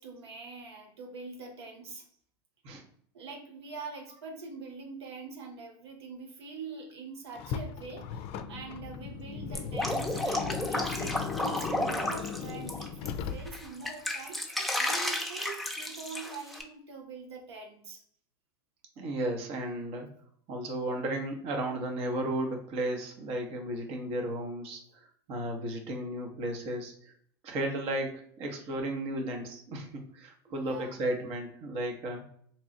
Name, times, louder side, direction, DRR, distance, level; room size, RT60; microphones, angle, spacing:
voice 1, 0.0-2.0 3.1-18.0 30.5-31.0, right 4 dB, 85° right, 0 dB, 0.8 m, -44 dB
Car, 7.3-13.8, left 7 dB, 50° left, 0.4 m, -37 dB
Drip, 9.5-13.1 13.5-16.6, left 1 dB, ahead, 0.7 m, -32 dB
voice 2, 19.0-20.1 20.5-24.8 25.3-27.1 27.4-32.2, right 1 dB, 50° right, 3 dB, 0.9 m, -34 dB
3.0 x 2.3 x 4.0 m, 0.62 s
hypercardioid pair, 100°, 13 cm